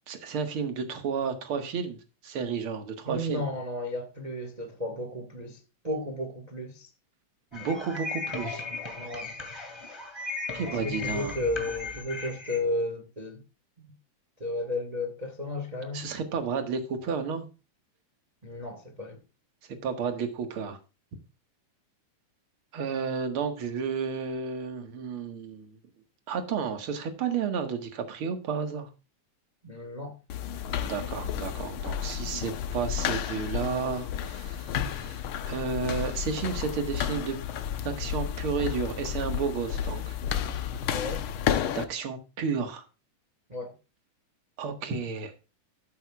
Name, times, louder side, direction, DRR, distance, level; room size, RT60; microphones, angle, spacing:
voice 1, 0.1-3.4 7.5-8.7 10.5-11.4 15.9-17.5 19.8-20.8 22.7-25.8 26.3-28.9 30.8-37.4 37.8-40.2 41.7-42.8 44.6-45.3, right 6 dB, 50° right, 2.2 m, -32 dB
voice 2, 3.0-5.6 5.8-6.9 9.0-9.3 10.6-13.4 13.8-13.9 14.4-16.0 18.4-19.2 29.6-30.2 40.9-41.2 43.5-43.7, left 1 dB, 65° right, 0.4 m, -33 dB
sound 1, 7.5-12.6, left 3 dB, 10° left, 2.0 m, -36 dB
sound 2, 30.3-41.8, left 9 dB, 85° left, 1.1 m, -32 dB
13.0 x 9.0 x 2.4 m
omnidirectional pair, 3.5 m